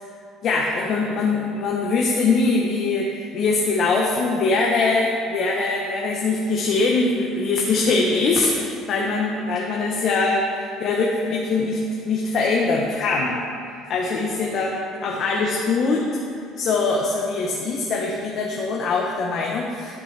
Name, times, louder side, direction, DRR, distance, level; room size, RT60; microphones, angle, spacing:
voice 1, 0.4-13.4 13.9-16.2 16.6-20.0, left 3 dB, 45° left, -2 dB, 0.9 m, -22 dB
13.0 x 6.0 x 3.3 m, 2.4 s
cardioid pair, 145°, 0 cm